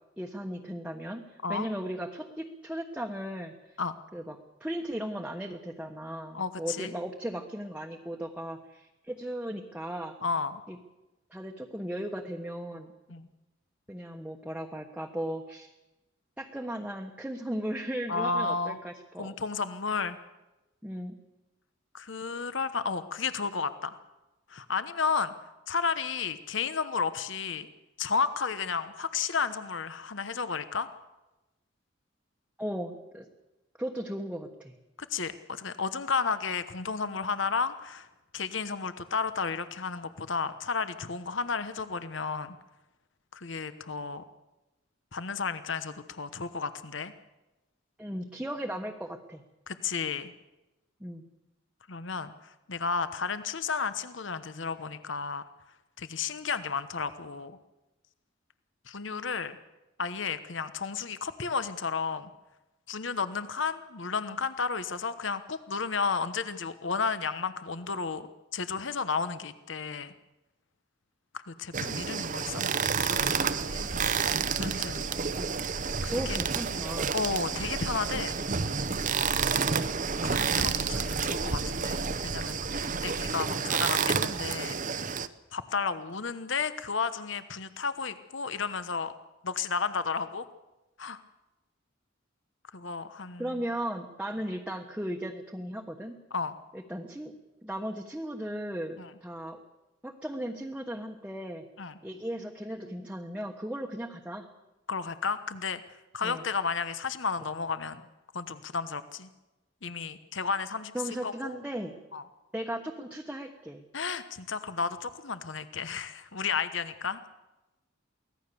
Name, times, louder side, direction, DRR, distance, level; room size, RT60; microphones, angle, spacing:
voice 1, 0.2-3.8 4.1-10.2 10.7-10.8 11.3-12.9 13.9-15.7 16.4-19.3 20.8-21.2 32.6-33.3 33.8-34.7 48.0-49.4 51.0-51.2 75.3-75.5 76.1-77.1 93.4-96.2 96.7-97.3 97.6-99.6 100.0-101.6 102.0-104.5 106.2-106.4 110.9-111.9 112.5-113.8, right 1 dB, 5° right, 1 dB, 1.2 m, -36 dB
voice 2, 6.3-6.9 10.2-10.6 13.1-13.3 18.1-18.8 19.2-20.2 21.9-24.0 24.5-25.3 25.7-27.7 28.0-30.9 35.0-38.1 38.3-42.6 43.3-44.2 45.1-47.1 49.7-50.3 51.9-55.4 56.0-57.6 58.9-59.6 60.0-62.3 62.9-70.1 71.3-73.9 74.6-75.0 76.0-76.4 77.1-78.4 80.2-85.1 85.5-89.1 89.4-90.5 91.0-91.2 92.7-93.6 96.3-96.6 99.0-99.1 101.8-101.9 104.9-105.8 106.1-108.0 108.3-109.3 109.8-110.9 111.2-111.6 112.1-112.2 113.9-117.2, left 5 dB, 65° left, 12 dB, 1.1 m, -32 dB
sound 1, 71.7-85.3, right 6 dB, 40° right, 0.8 m, -30 dB
sound 2, 72.9-83.3, right 1 dB, 80° right, 2.6 m, -41 dB
24.0 x 17.0 x 7.0 m, 1.0 s
head